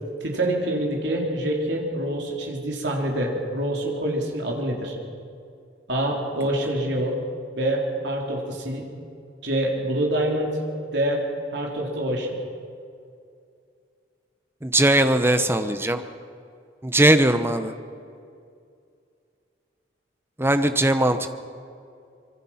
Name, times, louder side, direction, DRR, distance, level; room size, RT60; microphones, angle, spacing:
voice 1, 0.2-5.0 5.9-7.1 7.5-8.8 9.4-10.5 10.9-11.2 11.5-12.4, right 1 dB, 65° right, -1 dB, 3.9 m, -26 dB
voice 2, 14.6-16.0 16.8-17.7 20.4-21.4, right 1 dB, 10° right, 9 dB, 0.9 m, -20 dB
25.0 x 23.5 x 5.8 m, 2.4 s
head